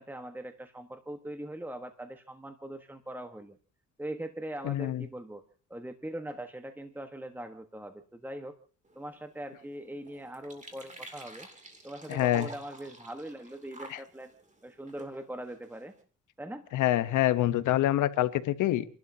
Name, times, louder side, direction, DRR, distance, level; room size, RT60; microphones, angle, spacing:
voice 1, 0.0-3.6 4.0-5.4 5.7-8.5 8.9-11.5 11.8-14.3 14.6-15.9 16.4-16.6, right 1 dB, 5° right, 7 dB, 1.3 m, -41 dB
voice 2, 4.6-5.0 12.1-12.5 13.9-14.0 16.7-18.8, left 14 dB, 85° left, 12 dB, 1.1 m, -26 dB
sound 1, 8.8-16.0, right 2 dB, 25° right, 2.8 m, -51 dB
30.0 x 12.0 x 2.8 m, 0.40 s
cardioid pair, 90°, 30 cm